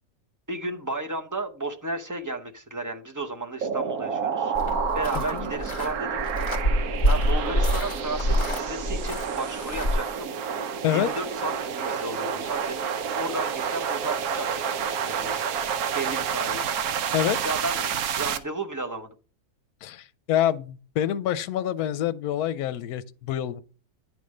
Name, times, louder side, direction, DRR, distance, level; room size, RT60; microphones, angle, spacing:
voice 1, 0.5-4.5 4.9-6.2 6.8-10.3 10.9-15.3 15.9-16.7 17.4-19.1, right 2 dB, 20° right, 0.5 m, -33 dB
sound 1, 3.6-18.4, right 7 dB, 75° right, 1.2 m, -29 dB
sound 2, 4.5-9.9, equal, 40° left, 2.0 m, -26 dB
voice 2, 5.1-5.5 10.8-11.1 17.1-17.4 19.8-23.6, left 11 dB, 85° left, 1.1 m, -26 dB
10.5 x 3.6 x 6.3 m
omnidirectional pair, 1.6 m